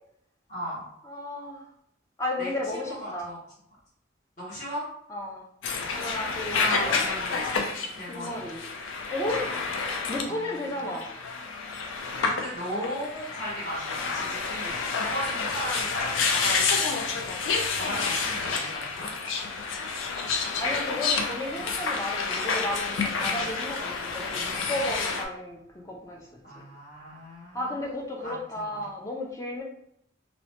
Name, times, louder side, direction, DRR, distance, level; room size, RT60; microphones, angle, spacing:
voice 1, 0.5-0.8 2.4-2.5 2.8-3.4 4.4-4.8 6.5-7.6 7.9-8.4 9.4-9.6 10.2-10.7 12.2-17.2 17.7-19.1 23.3-23.5 26.4-27.8 28.2-28.3 28.6-28.8, equal, 40° left, -10 dB, 0.9 m, -36 dB
voice 2, 1.0-1.6 2.2-3.3 5.1-5.4 5.9-7.0 8.1-8.6 9.1-9.4 10.1-11.1 20.6-26.3 27.5-29.6, left 1 dB, 15° left, 0 dB, 0.4 m, -33 dB
sound 1, 5.6-25.2, left 4 dB, 90° left, 0.4 m, -29 dB
2.9 x 2.1 x 2.9 m, 0.73 s
head